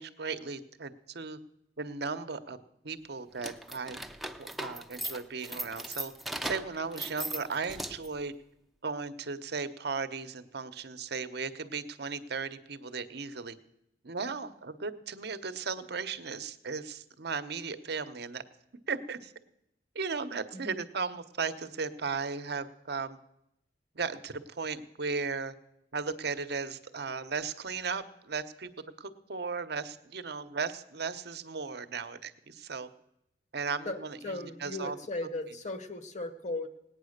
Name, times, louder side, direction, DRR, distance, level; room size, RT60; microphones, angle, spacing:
voice 1, 0.0-1.4 1.8-2.6 2.8-4.0 4.4-6.1 6.4-8.3 8.8-13.6 14.0-18.4 18.9-19.3 19.9-23.2 23.9-25.5 25.9-32.9 33.5-35.0, right 4 dB, 65° right, 11 dB, 0.9 m, -36 dB
sound 1, 3.3-8.2, right 1 dB, ahead, 0.6 m, -38 dB
voice 2, 34.2-36.7, left 2 dB, 45° left, 9 dB, 1.3 m, -36 dB
18.5 x 9.1 x 6.6 m, 0.82 s
head